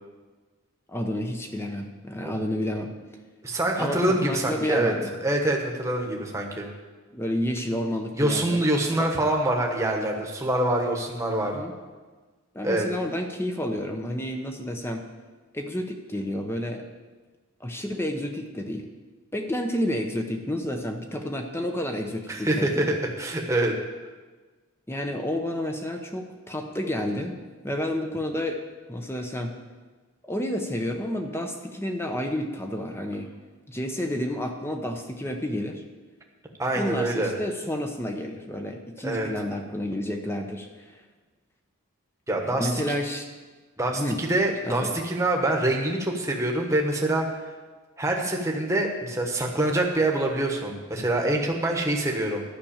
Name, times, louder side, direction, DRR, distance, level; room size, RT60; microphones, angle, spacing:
voice 1, 0.9-2.9 3.8-5.1 7.1-8.6 8.9-9.1 11.5-11.8 12.5-15.0 15.5-16.8 17.6-18.9 19.3-22.9 24.9-28.6 28.9-29.6 30.2-33.3 33.7-35.8 36.7-40.9 42.6-43.3 43.9-44.2 44.6-45.0, left 1 dB, 10° left, 4 dB, 0.8 m, -30 dB
voice 2, 3.4-4.9 5.2-6.7 8.2-11.5 12.6-12.9 22.3-23.7 36.6-37.3 39.0-39.3 42.3-42.7 43.8-47.4 48.0-52.4, right 1 dB, 15° right, 1 dB, 1.3 m, -25 dB
12.0 x 6.1 x 8.7 m, 1.3 s
head